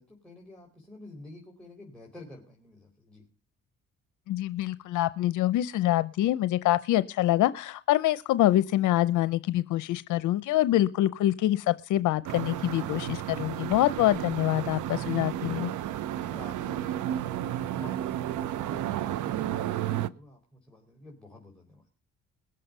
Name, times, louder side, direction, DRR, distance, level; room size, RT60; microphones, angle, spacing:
voice 1, 0.0-3.2 16.3-21.9, left 1 dB, 5° left, -3 dB, 4.5 m, -49 dB
voice 2, 4.3-15.7, left 14 dB, 80° left, 15 dB, 0.6 m, -25 dB
sound 1, 12.2-20.1, right 12 dB, 80° right, 0.8 m, -32 dB
20.5 x 7.7 x 5.4 m, 0.38 s
cardioid pair, 90°, 30 cm